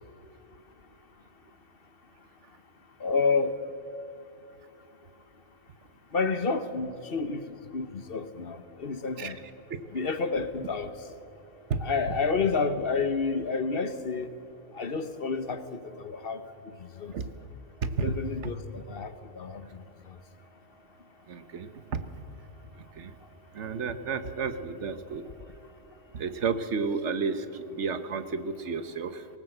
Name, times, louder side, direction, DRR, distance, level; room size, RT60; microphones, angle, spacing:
voice 1, 3.0-3.6 6.1-9.4 9.9-11.1 11.8-14.3 14.7-16.4 16.8-17.1 18.0-20.2, left 4 dB, 55° left, 11 dB, 1.1 m, -30 dB
voice 2, 17.8-18.2 18.4-18.5 21.3-22.0 22.7-23.2 23.5-25.3 26.1-29.3, right 5 dB, 70° right, 11 dB, 1.3 m, -32 dB
19.0 x 18.5 x 7.9 m, 2.6 s
omnidirectional pair, 1.2 m